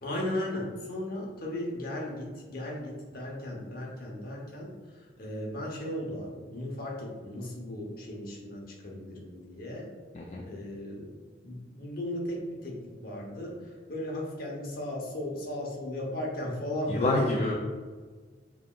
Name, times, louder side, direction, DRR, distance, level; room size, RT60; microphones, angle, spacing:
voice 1, 0.0-4.7 5.2-9.9 10.5-11.1 11.4-13.5 13.9-17.3, left 1 dB, 55° left, -2 dB, 0.9 m, -36 dB
voice 2, 16.9-17.5, left 2 dB, 35° left, -3 dB, 0.4 m, -27 dB
4.6 x 2.9 x 2.4 m, 1.5 s
head